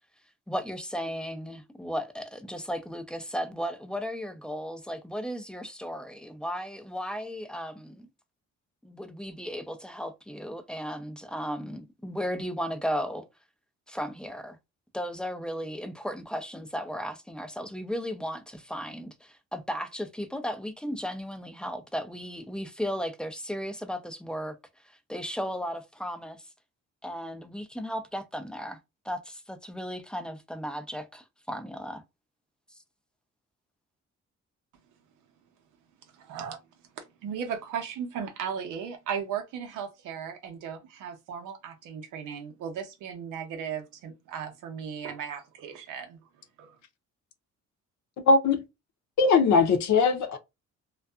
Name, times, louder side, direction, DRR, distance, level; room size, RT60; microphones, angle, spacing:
voice 1, 0.5-8.1 8.8-13.3 13.9-14.6 14.9-24.6 25.1-26.4 27.0-28.8 29.0-32.0, equal, 5° left, 0.4 m, -35 dB
voice 2, 36.1-36.6 37.0-46.2 46.6-46.8, right 7 dB, 90° right, 0.8 m, -36 dB
voice 3, 48.3-48.6 49.2-50.4, left 4 dB, 65° left, 0.6 m, -20 dB
2.6 x 2.3 x 2.3 m
cardioid pair, 90°, 30 cm